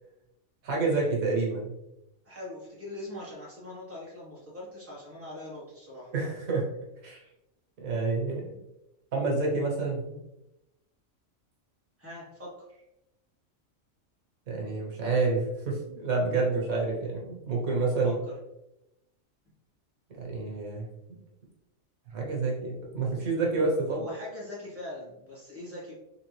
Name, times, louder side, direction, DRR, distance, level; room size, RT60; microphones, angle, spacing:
voice 1, 0.6-1.7 6.1-6.6 7.0-7.2 7.8-8.4 9.1-10.2 14.5-18.2 20.1-20.8 22.1-24.0, right 3 dB, 85° right, -2 dB, 1.5 m, -28 dB
voice 2, 2.2-6.1 12.0-12.8 18.0-18.3 23.6-25.9, left 1 dB, 10° right, -7 dB, 1.4 m, -42 dB
3.7 x 3.3 x 3.1 m, 0.90 s
omnidirectional pair, 1.4 m